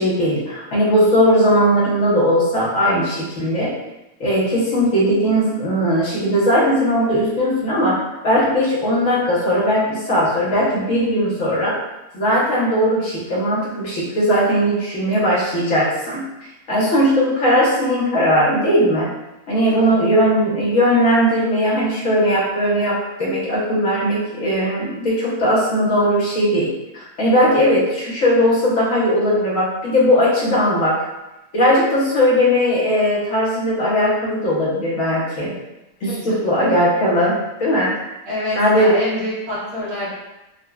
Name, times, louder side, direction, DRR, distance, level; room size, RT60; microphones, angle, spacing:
voice 1, 0.0-3.7 4.2-11.8 12.1-16.2 16.7-19.1 19.5-31.1 31.5-35.5 36.0-38.0 38.6-38.9, equal, 70° left, -5 dB, 1.1 m, -18 dB
voice 2, 19.6-20.1 36.1-36.4 38.2-40.1, left 1 dB, 60° right, -8 dB, 1.3 m, -27 dB
3.8 x 2.1 x 2.2 m, 0.97 s
omnidirectional pair, 1.5 m